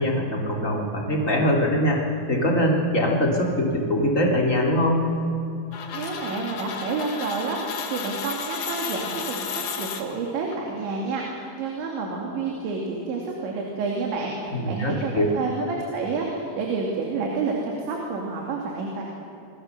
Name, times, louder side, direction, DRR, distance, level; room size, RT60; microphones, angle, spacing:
voice 1, 0.0-2.0 2.3-5.1 14.5-15.3, left 1 dB, 20° left, -1 dB, 2.9 m, -22 dB
sound 1, 5.7-10.5, left 6 dB, 55° left, 2.7 m, -33 dB
voice 2, 5.9-19.0, right 4 dB, 80° right, -1 dB, 4.9 m, -29 dB
28.0 x 23.0 x 6.7 m, 2.7 s
omnidirectional pair, 5.1 m